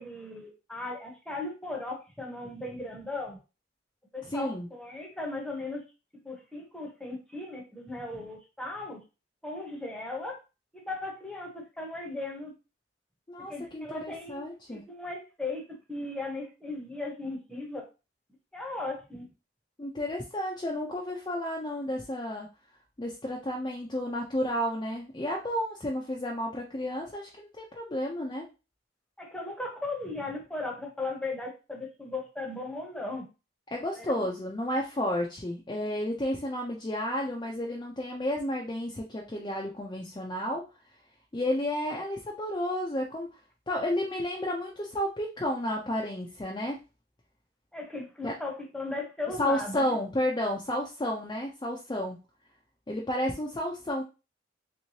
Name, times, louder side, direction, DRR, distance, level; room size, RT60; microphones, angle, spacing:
voice 1, 0.0-3.4 4.1-5.8 6.1-9.0 9.4-10.4 10.7-12.5 13.4-14.4 14.7-17.9 18.5-19.3 29.2-33.2 34.0-34.2 47.7-50.0, left 2 dB, 5° left, 0 dB, 0.8 m, -37 dB
voice 2, 4.2-4.7 13.3-14.8 19.8-22.5 23.0-28.5 33.7-40.6 41.3-43.3 43.7-46.8 48.2-48.3 49.4-52.2 52.9-54.0, left 1 dB, 25° left, -1 dB, 0.5 m, -31 dB
3.3 x 3.1 x 2.7 m, 0.29 s
head